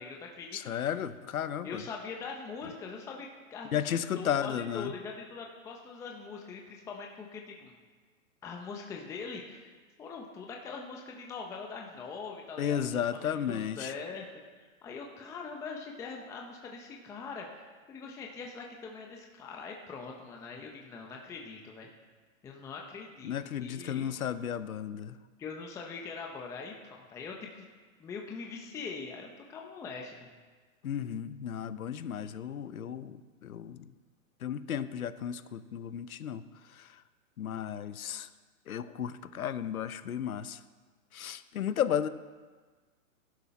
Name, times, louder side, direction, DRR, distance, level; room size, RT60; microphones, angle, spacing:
voice 1, 0.0-0.9 1.6-7.7 8.4-12.9 13.1-21.9 22.4-23.3 23.6-24.1 25.4-27.7 28.0-30.3, left 4 dB, 5° left, 1 dB, 0.7 m, -42 dB
voice 2, 0.5-1.8 3.7-4.9 12.6-13.9 23.2-25.2 30.8-33.8 34.4-36.4 37.4-38.3 38.7-40.6 41.1-42.1, left 9 dB, 80° left, 13 dB, 0.9 m, -34 dB
15.5 x 11.5 x 4.2 m, 1.4 s
hypercardioid pair, 145°, 42 cm